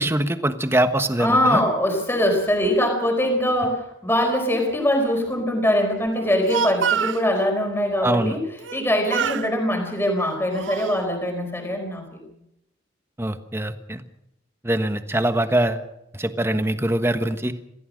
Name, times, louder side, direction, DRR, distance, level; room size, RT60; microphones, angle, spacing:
voice 1, 0.0-1.6 8.0-8.4 13.2-14.0 14.6-15.8 16.2-17.5, right 1 dB, 15° right, 9 dB, 1.2 m, -23 dB
voice 2, 1.2-8.4 8.7-12.2, equal, 15° left, 3 dB, 4.6 m, -22 dB
Speech, 6.2-7.3 8.6-8.8 9.1-9.5 10.2-11.0, right 7 dB, 85° right, 0.7 m, -26 dB
26.5 x 15.5 x 6.4 m, 0.83 s
head